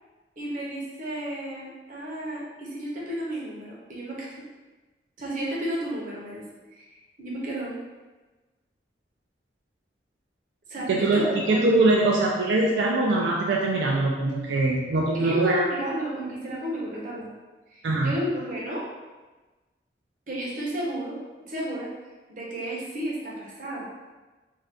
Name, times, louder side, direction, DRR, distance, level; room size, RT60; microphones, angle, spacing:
voice 1, 0.4-4.4 5.2-6.4 6.7-7.7 10.7-11.6 15.1-17.3 17.7-18.8 20.3-21.2 21.5-21.9 22.3-23.9, right 1 dB, 45° right, -5 dB, 0.7 m, -32 dB
voice 2, 10.9-15.6 17.8-18.2, right 2 dB, 80° right, -2 dB, 0.4 m, -22 dB
2.6 x 2.3 x 3.3 m, 1.2 s
head